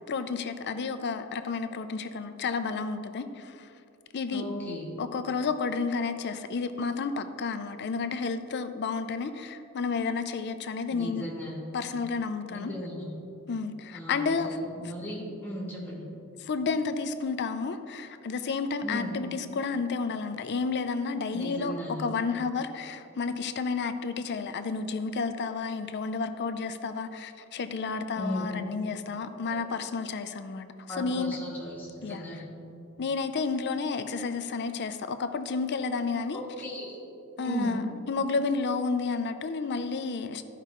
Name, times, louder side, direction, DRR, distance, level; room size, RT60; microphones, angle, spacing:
voice 1, 0.0-3.7 4.1-4.4 5.0-11.3 11.7-12.7 13.5-14.6 16.4-21.7 22.0-31.4 32.0-32.4 33.0-36.4 37.4-40.4, left 4 dB, 50° left, 10 dB, 0.5 m, -31 dB
voice 2, 4.3-4.9 10.9-11.6 12.5-13.2 13.9-16.0 18.8-19.2 21.3-22.0 28.1-28.5 29.5-29.6 30.9-32.5 36.3-37.0 37.4-37.8, equal, 10° left, -5 dB, 2.3 m, -36 dB
13.5 x 5.5 x 3.7 m, 2.6 s
head